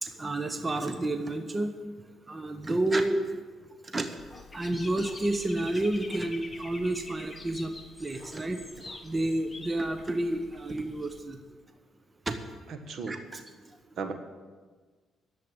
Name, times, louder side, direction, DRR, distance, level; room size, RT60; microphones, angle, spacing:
voice 1, 0.0-1.7 2.3-3.2 3.9-4.1 4.5-7.7 8.0-8.6 9.0-11.4 12.3-12.4 13.1-13.4, right 1 dB, 25° right, 7 dB, 0.9 m, -30 dB
Dog / Bird, 4.2-11.2, left 3 dB, 15° left, 1.3 m, -46 dB
voice 2, 12.7-13.2 14.0-14.1, right 4 dB, 65° right, 7 dB, 1.4 m, -35 dB
11.0 x 7.7 x 8.7 m, 1.4 s
cardioid pair, 90°, 0 cm